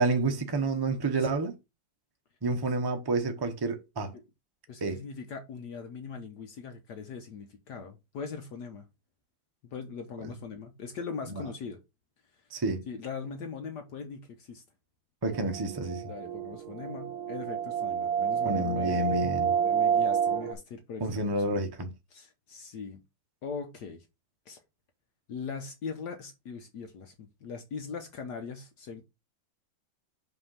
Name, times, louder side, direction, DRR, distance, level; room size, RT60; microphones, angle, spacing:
voice 1, 0.0-1.5 2.4-4.1 4.8-5.0 12.5-12.8 15.2-16.0 18.4-19.5 21.0-21.9, right 2 dB, 35° right, 0.4 m, -29 dB
voice 2, 4.7-8.9 9.6-11.8 12.3-12.4 12.9-14.6 16.1-19.2 19.6-21.4 22.1-23.0 23.4-24.1 24.5-24.6 25.3-29.0, left 5 dB, 65° left, 1.4 m, -40 dB
sound 1, 15.3-20.5, right 8 dB, 65° right, 1.1 m, -29 dB
5.4 x 3.5 x 5.6 m
omnidirectional pair, 2.1 m